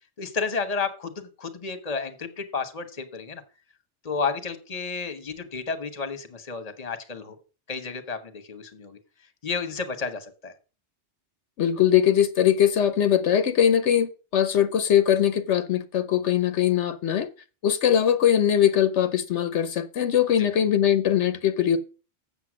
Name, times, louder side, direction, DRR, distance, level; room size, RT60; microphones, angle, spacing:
voice 1, 0.2-3.4 4.0-7.4 7.7-9.0 9.4-10.5 20.4-20.5, left 4 dB, 35° left, 1.2 m, -31 dB
voice 2, 11.6-17.3 17.6-21.8, left 9 dB, 80° left, 1.1 m, -21 dB
7.8 x 7.0 x 6.2 m
omnidirectional pair, 1.2 m